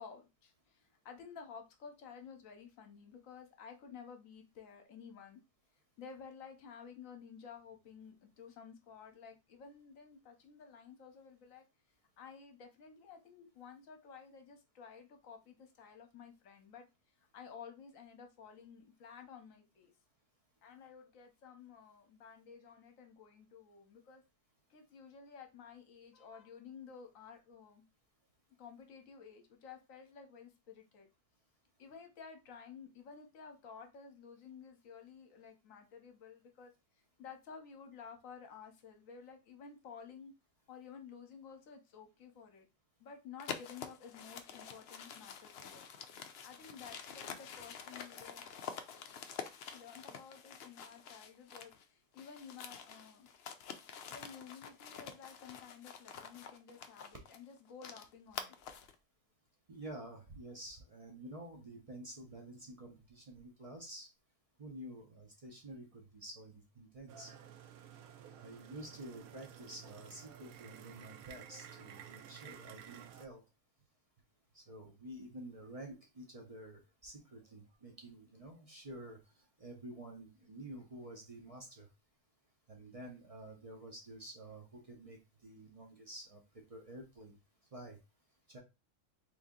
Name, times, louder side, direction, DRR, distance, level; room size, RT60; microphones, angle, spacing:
voice 1, 0.0-5.4 6.0-11.6 12.2-19.9 20.6-24.2 24.7-27.8 28.6-31.1 31.8-40.3 40.7-42.7 43.0-45.9 46.1-48.5 49.7-53.3 54.1-58.5, left 6 dB, 65° left, 5 dB, 1.1 m, -53 dB
sound 1, 43.4-51.8 52.1-59.0, left 7 dB, 85° left, 0.5 m, -48 dB
voice 2, 59.7-64.1 64.6-67.3 68.3-73.4 74.5-79.2 79.6-81.9 82.7-86.4 86.7-87.4 87.7-88.0 88.5-88.6, right 1 dB, 40° right, 1 dB, 0.5 m, -50 dB
sound 2, 67.1-73.2, right 9 dB, 70° right, 1.0 m, -53 dB
3.3 x 2.7 x 3.6 m, 0.26 s
omnidirectional pair, 1.6 m